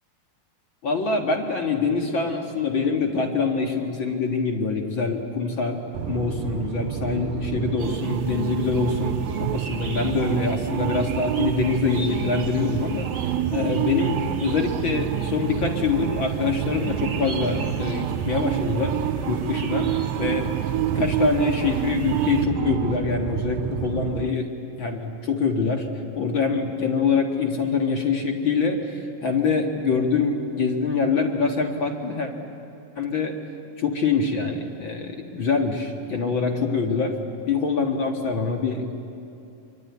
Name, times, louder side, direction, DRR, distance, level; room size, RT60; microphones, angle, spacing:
voice 1, 0.8-13.1 13.5-19.0 19.2-19.9 20.2-20.5 20.8-24.5 24.8-25.9 26.1-32.3 32.9-33.3 33.8-37.2 37.5-38.9, left 4 dB, 50° left, 2 dB, 1.6 m, -25 dB
sound 1, 5.9-24.3, right 10 dB, 75° right, 2.3 m, -28 dB
sound 2, 7.8-22.5, right 4 dB, 40° right, 1.9 m, -43 dB
25.0 x 23.0 x 9.6 m, 2.7 s
omnidirectional pair, 4.5 m